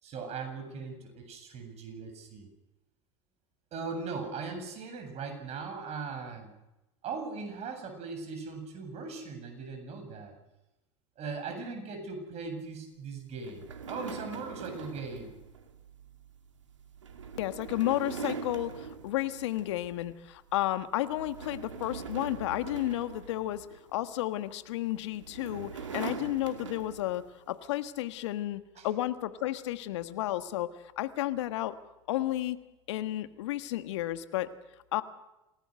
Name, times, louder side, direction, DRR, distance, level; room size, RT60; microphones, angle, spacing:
voice 1, 0.0-2.5 3.7-6.5 7.0-10.3 11.2-15.3 28.8-28.9, right 4 dB, 45° right, 6 dB, 7.8 m, -39 dB
sound 1, 13.4-20.0 20.3-20.6 21.0-24.0 24.9-27.3, right 6 dB, 90° right, 2.4 m, -42 dB
voice 2, 17.4-23.6 23.9-30.7 31.0-31.8 32.1-32.6 32.9-34.5 34.9-35.0, left 15 dB, 70° left, 11 dB, 1.5 m, -32 dB
27.5 x 18.5 x 6.6 m, 0.95 s
hypercardioid pair, 80°, 15 cm